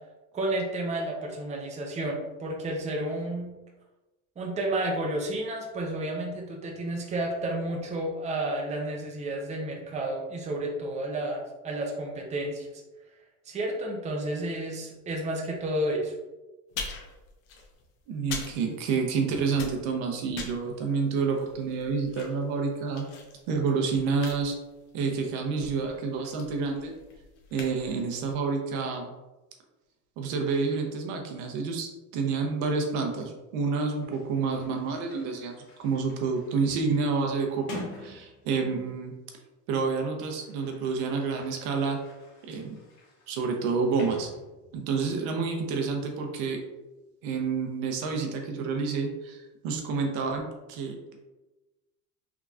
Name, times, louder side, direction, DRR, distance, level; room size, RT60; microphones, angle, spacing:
voice 1, 0.3-3.6 4.4-12.7 13.5-16.1, right 1 dB, 15° right, 0 dB, 0.6 m, -31 dB
sound 1, 16.7-19.2 19.5-28.3, left 4 dB, 60° left, 0.9 m, -43 dB
voice 2, 18.1-23.1 23.5-24.5 24.9-26.9 27.5-29.1 30.2-39.2 39.7-42.0 42.4-42.8 43.3-44.3 44.7-46.6 47.2-50.4 50.7-51.2, right 4 dB, 65° right, 2 dB, 0.8 m, -29 dB
Sliding door, 34.0-39.1 40.0-45.0, left 2 dB, 80° left, 1.3 m, -47 dB
3.5 x 2.9 x 2.4 m, 1.1 s
supercardioid pair, 95°, 45 cm